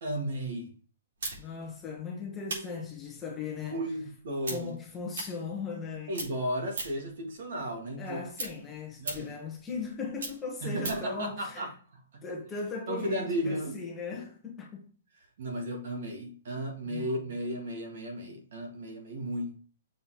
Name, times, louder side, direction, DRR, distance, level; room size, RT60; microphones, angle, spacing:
voice 1, 0.0-0.7 3.7-4.7 6.1-8.2 9.0-9.3 10.6-11.7 12.1-12.2 12.9-13.8 15.4-19.6, equal, 55° right, 2.1 m, -34 dB
sound 1, 1.2-5.9 6.1-7.1 7.5-11.1, right 3 dB, 80° right, 3.9 m, -40 dB
voice 2, 1.4-3.8 4.5-6.1 8.0-11.7 12.2-14.9 16.9-17.1, left 4 dB, 10° left, 1.2 m, -38 dB
6.8 x 4.2 x 4.8 m
hypercardioid pair, 180°, 0 cm